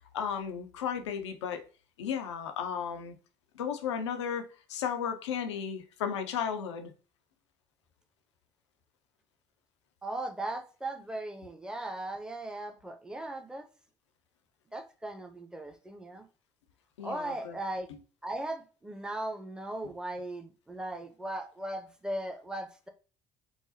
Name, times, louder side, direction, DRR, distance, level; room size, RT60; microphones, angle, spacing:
voice 1, 0.1-1.6 2.0-3.1 3.6-6.9 17.0-17.6, left 7 dB, 85° left, 0.4 m, -34 dB
voice 2, 10.0-13.7 14.7-16.3 17.0-17.9 18.2-22.9, right 1 dB, 5° right, 0.6 m, -38 dB
4.6 x 2.0 x 2.7 m
hypercardioid pair, 55°, 15 cm